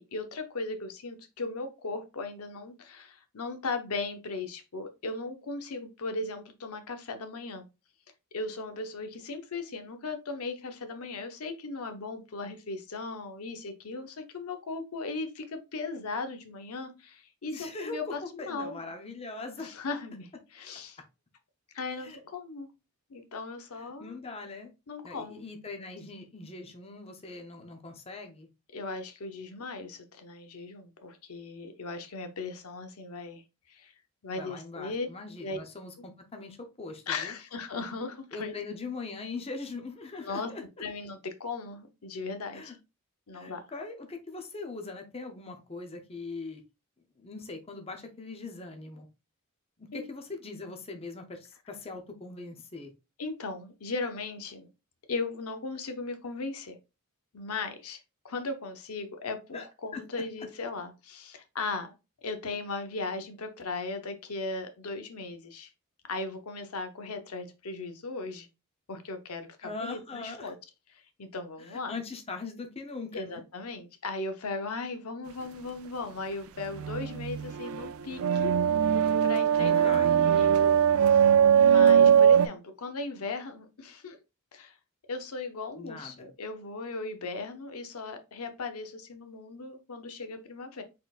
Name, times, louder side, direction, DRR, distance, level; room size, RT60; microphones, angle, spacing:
voice 1, 0.0-7.6 8.3-18.8 19.6-21.0 21.7-22.7 23.1-24.2 24.9-25.4 28.7-33.4 33.7-33.9 34.2-35.1 35.4-35.6 37.1-38.5 40.2-40.5 40.8-42.8 43.3-43.6 49.9-50.0 53.2-54.7 55.1-56.8 57.3-61.9 62.2-65.7 66.1-68.5 68.9-70.5 70.9-71.9 73.1-78.5 79.2-79.9 80.4-81.3 81.5-84.2 84.5-84.8 85.1-90.8, left 3 dB, 85° left, 0.7 m, -37 dB
voice 2, 17.5-19.7 22.0-22.2 23.8-24.7 25.0-28.5 34.4-37.3 38.3-40.6 42.5-42.7 43.3-46.6 47.2-49.1 49.8-52.9 59.5-59.6 59.9-60.0 69.6-70.5 71.7-73.4 79.6-80.2 82.0-82.2 85.8-86.3, left 3 dB, 25° left, 0.7 m, -41 dB
sound 1, 76.6-82.5, right 8 dB, 70° right, 0.3 m, -21 dB
4.1 x 3.8 x 2.4 m
head